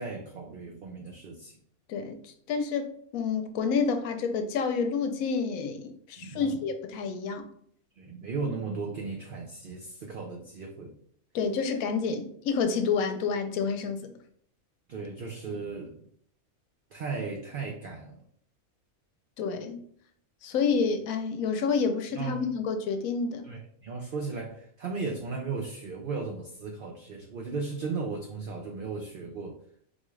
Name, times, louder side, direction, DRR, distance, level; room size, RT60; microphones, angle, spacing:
voice 1, 0.0-1.6 6.2-6.6 8.0-11.0 14.9-16.0 16.9-18.2 22.1-22.4 23.4-29.6, right 4 dB, 90° right, 0.4 m, -36 dB
voice 2, 1.9-7.5 11.3-14.1 19.4-19.8 20.4-23.5, left 5 dB, 80° left, 1.0 m, -29 dB
4.0 x 2.3 x 3.1 m
omnidirectional pair, 1.5 m